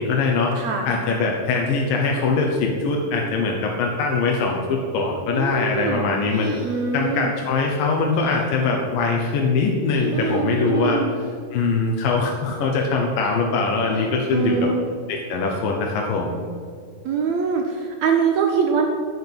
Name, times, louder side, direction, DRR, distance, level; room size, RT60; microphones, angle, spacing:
voice 1, 0.0-0.6 0.9-6.5 6.9-11.0 11.5-14.7 15.1-16.4, left 4 dB, 75° left, 0 dB, 2.7 m, -22 dB
voice 2, 0.5-0.9 5.3-6.0 6.6-7.3 10.1-11.2 14.3-14.8 17.0-18.9, right 5 dB, 65° right, 1 dB, 2.0 m, -23 dB
sound 1, 6.2-6.9 8.1-8.5 9.9-10.3 12.5-12.8 13.7-14.3, equal, 40° right, 3.8 m, -37 dB
10.5 x 6.6 x 8.7 m, 2.1 s
omnidirectional pair, 4.1 m